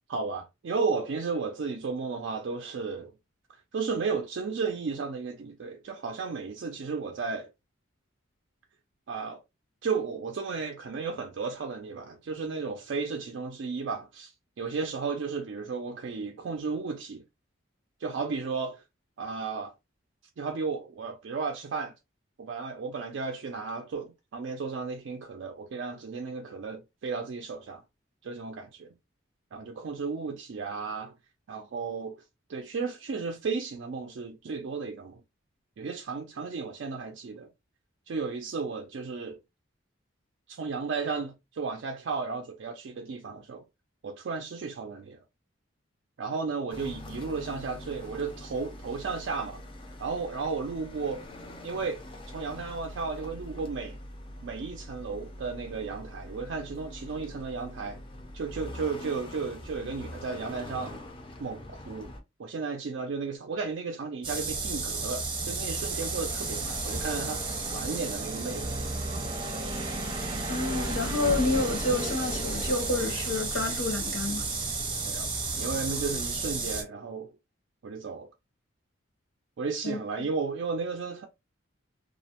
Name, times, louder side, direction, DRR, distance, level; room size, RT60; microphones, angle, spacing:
voice 1, 0.1-3.1 3.5-7.5 9.1-9.4 9.8-14.3 14.6-17.2 18.0-18.8 19.2-19.7 20.4-21.9 22.4-27.8 28.2-28.9 29.5-31.1 31.5-32.2 32.5-35.2 35.8-37.5 38.1-39.4 40.5-43.6 44.0-45.2 46.2-49.6 50.0-51.3 51.6-54.0 54.4-58.0 58.3-61.0 61.4-62.1 62.4-67.4 67.7-68.7 75.0-75.3 75.6-77.3 77.8-78.3 79.6-81.3, right 4 dB, 60° right, 0.4 m, -34 dB
sound 1, 46.7-62.2, left 1 dB, 25° left, 0.4 m, -44 dB
sound 2, 64.2-76.8, right 3 dB, 25° right, 0.7 m, -32 dB
voice 2, 70.5-74.5 79.8-80.0, left 2 dB, 75° left, 0.8 m, -29 dB
2.4 x 2.0 x 2.8 m
head